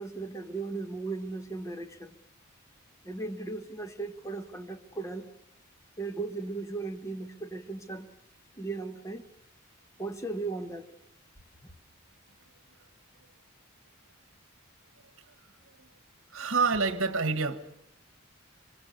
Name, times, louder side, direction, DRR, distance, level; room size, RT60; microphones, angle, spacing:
voice 1, 0.0-2.1 3.0-5.3 6.0-8.1 8.5-9.3 10.0-10.9, right 3 dB, 15° left, 1.2 m, -37 dB
voice 2, 16.3-17.6, right 4 dB, 60° right, 1.4 m, -27 dB
25.5 x 25.0 x 6.8 m
head